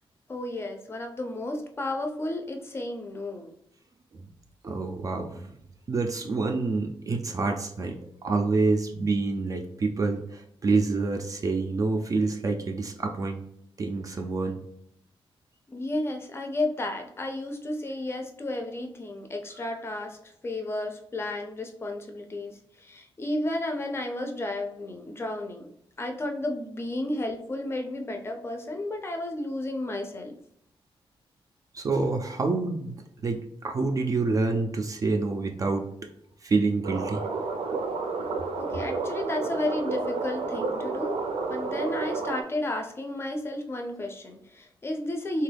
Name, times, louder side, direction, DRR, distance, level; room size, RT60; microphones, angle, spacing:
voice 1, 0.3-3.5 15.7-25.7 26.0-30.4 38.5-41.2 41.5-45.4, left 1 dB, 25° left, 4 dB, 0.5 m, -32 dB
voice 2, 4.6-5.5 5.9-8.0 8.2-13.4 13.8-14.6 31.7-35.8 36.4-37.2, right 3 dB, 35° right, 3 dB, 0.4 m, -27 dB
sound 1, 36.8-42.4, right 4 dB, 90° right, 0.5 m, -31 dB
3.3 x 2.3 x 3.3 m, 0.74 s
wide cardioid pair, 150°, 10 cm